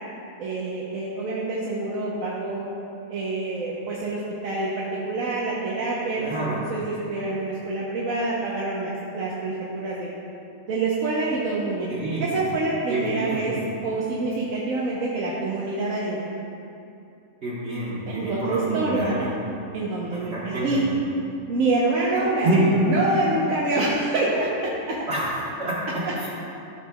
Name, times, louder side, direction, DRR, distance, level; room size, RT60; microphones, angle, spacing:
voice 1, 0.4-2.7 3.1-10.1 10.7-11.9 12.2-13.6 13.8-16.2 18.1-19.3 19.7-20.9 21.5-24.5 24.9-25.0 26.0-26.1, right 2 dB, 70° right, -5 dB, 1.2 m, -26 dB
voice 2, 6.2-6.6 11.9-12.4 12.9-13.5 17.4-19.2 20.1-20.9 22.1-22.7 25.1-26.3, right 1 dB, 50° right, -8 dB, 1.5 m, -27 dB
13.0 x 6.0 x 2.3 m, 2.7 s
omnidirectional pair, 1.5 m